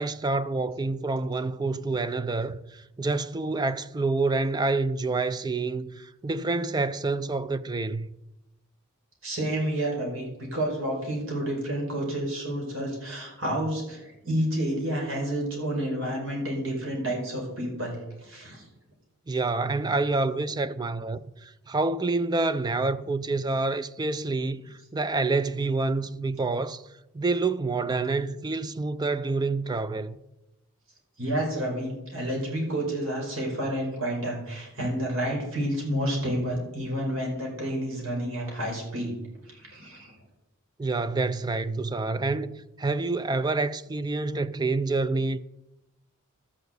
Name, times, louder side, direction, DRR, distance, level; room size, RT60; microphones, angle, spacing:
voice 1, 0.0-8.1 19.3-26.8 27.1-30.2 40.8-45.4, right 3 dB, 20° right, 0.4 m, -27 dB
voice 2, 9.2-18.6 31.2-39.1 39.4-40.1, right 1 dB, 65° right, 5.0 m, -30 dB
13.0 x 6.9 x 8.1 m
head